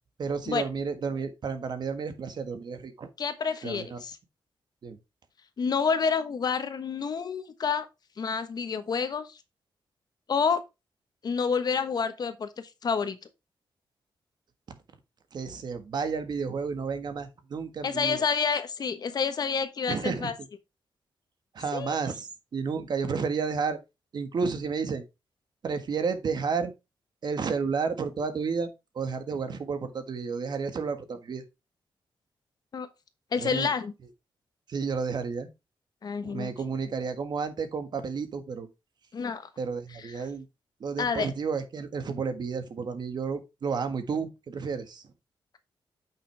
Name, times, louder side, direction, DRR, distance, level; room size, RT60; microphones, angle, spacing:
voice 1, 0.2-3.1 3.6-4.0 4.8-5.0 15.3-18.2 19.9-20.3 21.5-23.8 24.1-25.0 25.6-26.7 27.2-31.4 33.4-33.7 34.7-35.5 36.2-38.7 39.6-40.5 40.8-45.0, right 5 dB, 55° right, 1.6 m, -31 dB
voice 2, 3.2-4.2 5.6-7.9 8.2-9.4 10.3-10.6 11.2-13.2 17.8-20.3 21.7-22.0 32.7-32.9 33.3-33.9 36.0-36.5 39.1-39.5 41.0-41.3, left 6 dB, 50° left, 1.2 m, -28 dB
8.7 x 6.1 x 3.4 m
wide cardioid pair, 145°, 9 cm